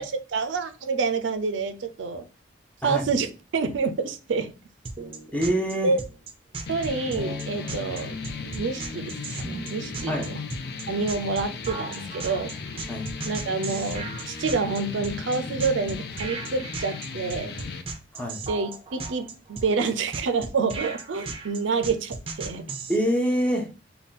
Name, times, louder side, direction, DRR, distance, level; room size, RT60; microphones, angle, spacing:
voice 1, 0.0-2.3 2.8-3.3 3.5-4.5 5.8-6.0 6.7-10.4 10.9-12.5 13.3-17.6 18.5-22.6, right 4 dB, 90° right, 9 dB, 0.5 m, -28 dB
sound 1, 4.8-23.0, right 3 dB, 30° right, 0.5 m, -36 dB
voice 2, 5.3-5.9 10.1-10.3 12.9-13.1 18.1-18.4 22.9-23.7, equal, 10° left, 1 dB, 0.7 m, -25 dB
sound 2, 6.7-17.8, left 5 dB, 55° left, 0.5 m, -36 dB
3.6 x 2.3 x 4.0 m, 0.33 s
head